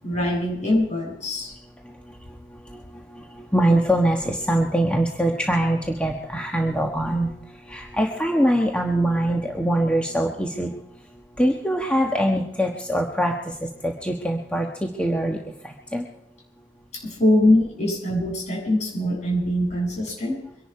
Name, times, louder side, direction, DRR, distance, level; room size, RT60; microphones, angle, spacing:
voice 1, 0.0-1.5 9.0-9.1 16.9-20.4, left 1 dB, 40° left, -1 dB, 7.8 m, -23 dB
voice 2, 3.1-7.3 7.7-10.7 11.4-15.4 15.6-16.1, right 1 dB, 5° left, 1 dB, 1.3 m, -23 dB
24.5 x 11.5 x 4.8 m, 0.80 s
head